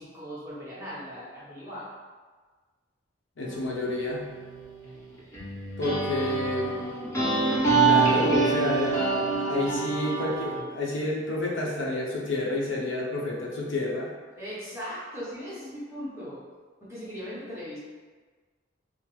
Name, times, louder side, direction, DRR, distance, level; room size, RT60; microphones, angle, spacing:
voice 1, 0.0-1.9 6.1-6.3 14.4-16.4 16.8-17.8, equal, 15° right, -10 dB, 1.0 m, -38 dB
voice 2, 3.4-4.2 5.8-7.1 7.8-14.1, left 2 dB, 85° left, -2 dB, 0.8 m, -29 dB
sound 1, 3.4-10.6, right 4 dB, 15° left, 1.0 m, -26 dB
5.3 x 2.1 x 3.1 m, 1.4 s
head